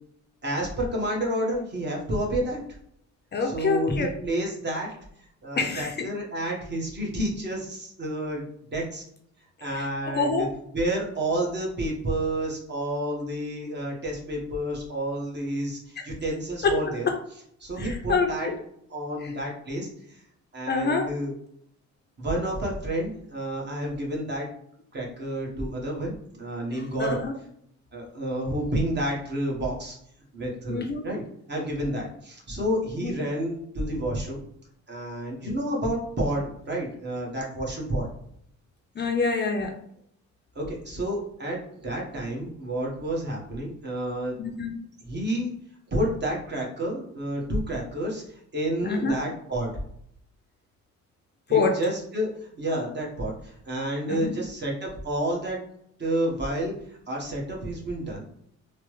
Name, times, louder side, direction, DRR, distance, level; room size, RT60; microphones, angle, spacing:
voice 1, 0.4-2.6 3.4-4.9 5.4-8.4 8.7-9.0 9.6-10.5 10.7-17.1 17.6-18.5 18.9-20.2 20.5-21.3 22.2-24.5 24.9-27.2 27.9-30.0 30.3-34.4 34.9-38.1 40.5-44.3 45.1-45.5 45.9-48.2 48.5-49.7 51.5-55.6 56.0-56.7 57.1-58.2, right 1 dB, 35° right, -2 dB, 1.1 m, -30 dB
voice 2, 3.3-4.1 5.6-6.1 9.6-9.9 10.1-10.5 16.0-16.1 16.6-16.8 17.1-17.2 17.8-18.6 19.2-19.3 20.7-21.1 26.7-27.3 30.7-31.1 33.0-33.1 35.5-35.7 39.0-39.7 44.4-44.7 48.8-49.1 51.5-51.8 54.1-54.4, left 4 dB, 35° left, 3 dB, 0.4 m, -26 dB
3.1 x 2.0 x 3.1 m, 0.69 s
cardioid pair, 90°, 30 cm